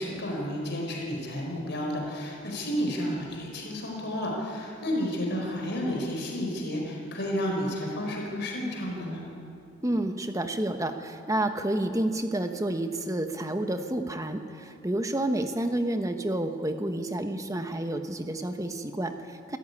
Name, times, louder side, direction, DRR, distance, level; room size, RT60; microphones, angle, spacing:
voice 1, 0.0-9.2, equal, 55° left, -1 dB, 4.6 m, -31 dB
voice 2, 9.8-19.6, right 1 dB, 15° right, 7 dB, 1.2 m, -30 dB
27.5 x 14.0 x 9.8 m, 2.6 s
head